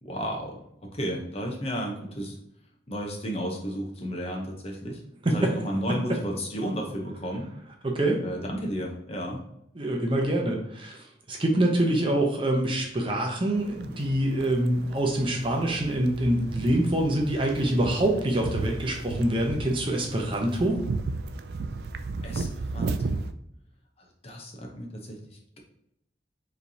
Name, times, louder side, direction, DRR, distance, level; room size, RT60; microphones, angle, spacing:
voice 1, 0.0-2.4 2.9-5.0 5.3-7.5 8.2-9.4 10.2-10.3 22.2-23.3 24.2-25.2, equal, 35° left, 1 dB, 0.8 m, -33 dB
voice 2, 7.8-8.2 9.8-20.8, right 1 dB, 30° right, 1 dB, 0.7 m, -25 dB
sound 1, 13.6-23.3, right 3 dB, 60° right, 0.3 m, -35 dB
4.9 x 3.2 x 2.8 m, 0.76 s
head